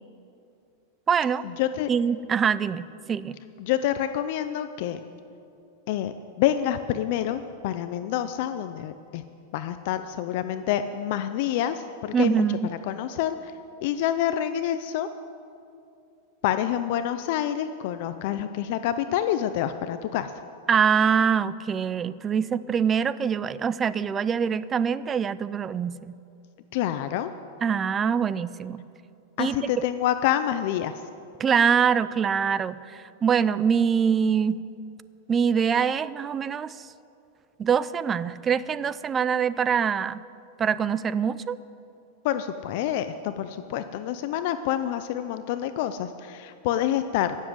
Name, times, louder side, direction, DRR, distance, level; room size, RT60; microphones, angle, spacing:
voice 1, 1.1-1.4 1.9-3.4 12.1-12.7 20.7-26.1 27.6-28.8 29.4-29.7 31.4-34.6 35.3-36.9 37.6-40.2 40.6-41.6, right 7 dB, 20° right, 17 dB, 0.4 m, -24 dB
voice 2, 1.6-1.9 3.6-5.0 5.9-9.2 9.5-12.4 12.7-13.5 13.8-15.1 16.4-20.3 26.7-27.3 29.4-31.0 42.2-47.4, left 11 dB, 55° left, 10 dB, 0.5 m, -27 dB
16.0 x 7.4 x 7.9 m, 2.7 s
supercardioid pair, 145°, 0 cm